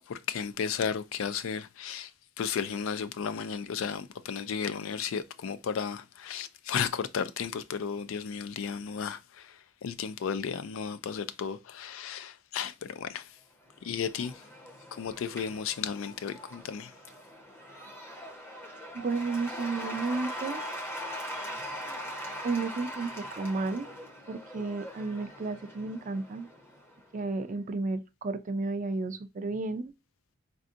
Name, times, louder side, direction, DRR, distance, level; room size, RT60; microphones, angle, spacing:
voice 1, 0.1-2.1 2.4-13.3 13.8-14.4 14.9-16.9, left 7 dB, 75° left, 0.4 m, -34 dB
Cheering / Applause / Crowd, 13.6-27.1, equal, 10° left, 0.7 m, -41 dB
voice 2, 18.9-20.6 22.4-23.9 24.3-26.5 27.1-29.9, right 3 dB, 40° right, 0.4 m, -32 dB
4.3 x 2.6 x 2.5 m
head